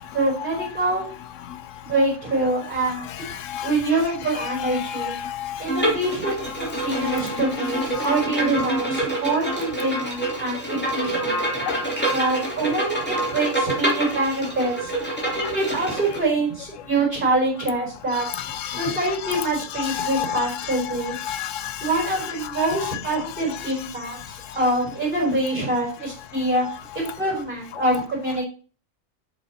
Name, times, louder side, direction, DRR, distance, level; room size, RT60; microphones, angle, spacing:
voice 1, 0.1-1.1 1.8-3.1 3.6-5.1 5.6-11.4 12.0-14.9 15.5-18.2 18.7-21.2 21.8-26.6 26.9-28.5, right 2 dB, 40° right, -2 dB, 4.4 m, -25 dB
voice 2, 4.4-5.5 7.0-7.1 8.0-8.1 11.7-11.8 18.6-18.9 19.2-19.5 19.8-20.5 21.1-21.7 22.0-22.1 22.6-23.0, left 10 dB, 75° left, 14 dB, 0.9 m, -29 dB
Bowed string instrument, 5.7-16.2, right 1 dB, 10° left, 2.7 m, -26 dB
7.9 x 6.8 x 4.2 m, 0.39 s
omnidirectional pair, 1.4 m